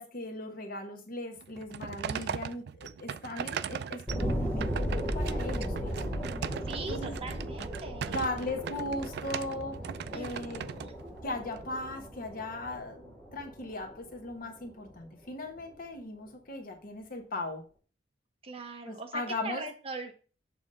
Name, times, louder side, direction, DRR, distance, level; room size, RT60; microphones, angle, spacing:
voice 1, 0.0-6.3 6.9-7.2 8.0-9.8 10.1-10.7 11.2-17.6 18.8-19.6, left 2 dB, 50° left, 4 dB, 1.2 m, -38 dB
sound 1, 1.4-11.6, right 7 dB, 65° right, 0.3 m, -39 dB
sound 2, 4.1-15.1 15.5-15.6, equal, 10° left, 2.3 m, -36 dB
voice 2, 6.6-8.2 10.1-11.0 18.4-20.1, right 3 dB, 35° right, 4 dB, 1.1 m, -41 dB
7.0 x 3.5 x 5.3 m, 0.37 s
head